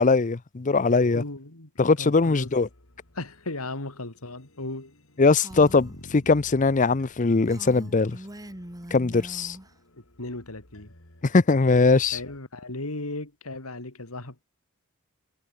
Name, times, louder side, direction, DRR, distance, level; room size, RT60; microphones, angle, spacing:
voice 1, 0.0-1.2 1.8-2.7 5.2-8.2 8.9-9.6 11.2-12.2, left 3 dB, 35° left, 0.6 m, -21 dB
voice 2, 1.0-1.7 2.0-2.5 3.1-4.9 10.0-10.9 12.1-14.4, left 2 dB, 80° left, 3.4 m, -36 dB
sound 1, 2.1-12.4, left 1 dB, 65° left, 4.0 m, -52 dB
Female speech woman speaking, 5.3-6.0 7.4-9.7, right 1 dB, 15° right, 1.8 m, -42 dB
head